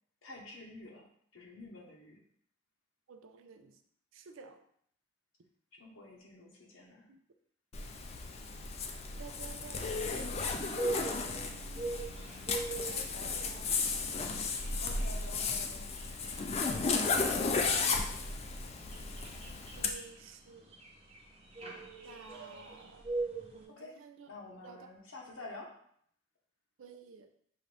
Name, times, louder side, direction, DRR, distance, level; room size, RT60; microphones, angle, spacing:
voice 1, 0.2-1.1 1.3-2.2 5.7-7.1 13.1-13.3 14.8-15.8 23.7-23.9 24.3-25.7, left 2 dB, 80° left, -2 dB, 1.0 m, -50 dB
voice 2, 3.1-3.8 4.1-4.6 7.1-7.2 9.2-11.6 12.6-13.7 19.8-20.7 22.0-23.0 23.5-24.3 24.6-24.9 26.8-27.3, right 5 dB, 75° right, 6 dB, 0.5 m, -52 dB
Zipper (clothing), 7.7-19.9, left 4 dB, 30° left, 0.3 m, -34 dB
sound 1, 10.8-23.6, right 3 dB, 30° right, 0.7 m, -43 dB
5.6 x 2.6 x 3.3 m, 0.66 s
head